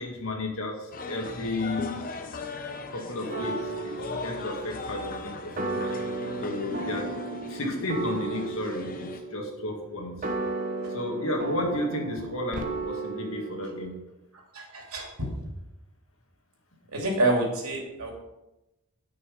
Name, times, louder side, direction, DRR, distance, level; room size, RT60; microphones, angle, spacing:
voice 1, 0.0-2.2 2.9-5.9 6.4-7.2 7.5-10.3 10.9-14.0, left 1 dB, 65° left, 1 dB, 2.0 m, -33 dB
sound 1, 0.9-9.2, left 3 dB, 40° left, 0.8 m, -38 dB
sound 2, 3.3-14.0, right 3 dB, 40° right, 0.9 m, -35 dB
voice 2, 14.5-15.3 16.9-18.1, right 2 dB, 80° right, -1 dB, 2.8 m, -28 dB
9.8 x 6.1 x 5.2 m, 0.94 s
head